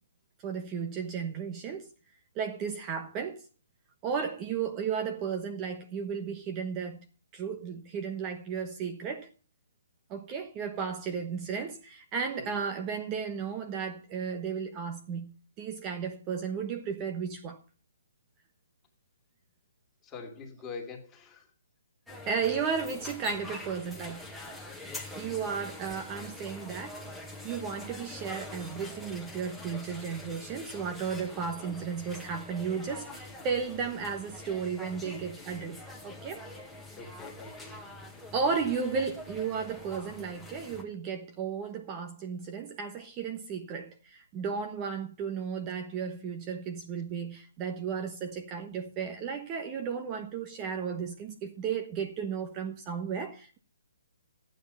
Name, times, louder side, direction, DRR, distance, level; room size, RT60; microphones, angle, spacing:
voice 1, 0.4-1.9 2.3-3.4 4.0-7.0 7.3-9.3 10.1-17.6 22.3-24.5 25.1-36.4 38.3-53.6, right 6 dB, 25° right, 1.2 m, -34 dB
voice 2, 20.0-21.5 22.5-22.6 37.0-37.8, left 4 dB, 15° left, 2.7 m, -44 dB
sound 1, 22.1-40.8, left 2 dB, ahead, 1.9 m, -45 dB
12.5 x 9.3 x 5.6 m
hypercardioid pair, 145°, 0 cm